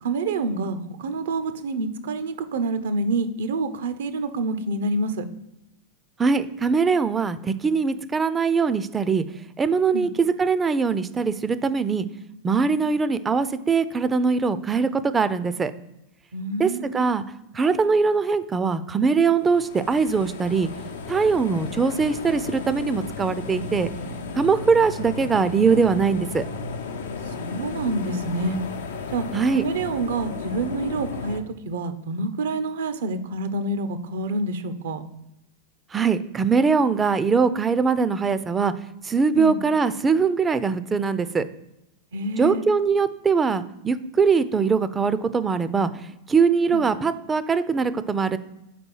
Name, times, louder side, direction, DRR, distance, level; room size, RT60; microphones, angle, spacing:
voice 1, 0.0-5.2 9.9-10.1 16.3-17.0 27.4-28.6 29.1-29.3 29.6-35.0 39.3-39.6 42.1-42.6 46.7-46.8, right 2 dB, 75° right, 11 dB, 0.7 m, -27 dB
voice 2, 6.2-9.2 9.6-12.1 12.4-15.7 16.6-17.2 17.5-20.7 21.1-23.9 24.3-26.4 29.3-29.6 35.9-38.7 39.0-41.4 42.4-45.9 46.3-48.4, right 5 dB, 20° right, 13 dB, 0.4 m, -22 dB
sound 1, 19.4-31.4, left 4 dB, 80° left, 0.7 m, -34 dB
4.1 x 4.1 x 5.5 m, 0.89 s
hypercardioid pair, 110°, 0 cm